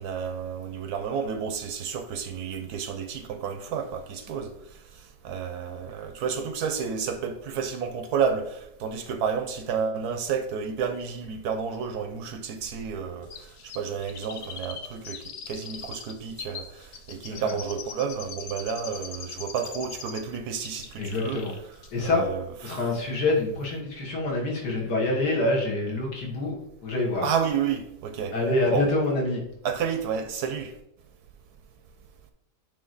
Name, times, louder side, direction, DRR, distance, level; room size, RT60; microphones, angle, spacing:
voice 1, 0.0-4.5 5.2-13.3 13.6-15.2 15.5-21.4 22.0-22.9 27.2-28.3 28.7-28.9 29.6-30.7, right 6 dB, 70° right, 1.0 m, -30 dB
Chirp tweet, 13.3-20.4 20.6-21.6 21.8-21.9, left 6 dB, 85° left, 0.5 m, -41 dB
voice 2, 21.0-21.5 21.9-22.2 22.6-26.6 26.8-27.3 28.3-29.4, left 2 dB, 70° left, 2.2 m, -26 dB
8.8 x 3.2 x 3.9 m
omnidirectional pair, 1.9 m